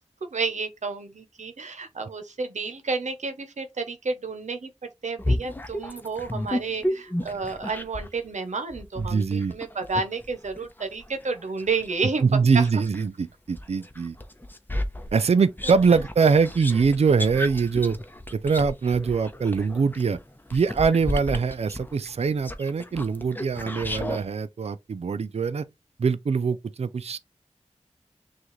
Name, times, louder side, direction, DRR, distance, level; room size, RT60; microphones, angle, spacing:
voice 1, 0.3-4.7 5.0-12.2 12.5-12.7 15.9-16.0, right 4 dB, 85° right, 0.8 m, -31 dB
sound 1, 5.2-8.2 8.7-13.1 13.6-24.2, left 1 dB, 15° left, 0.8 m, -33 dB
voice 2, 9.0-9.5 12.2-14.2 15.1-18.0 18.4-20.2 20.5-25.6 26.0-27.2, right 5 dB, 60° right, 0.4 m, -23 dB
6.1 x 2.4 x 3.1 m
cardioid pair, 40°, 12 cm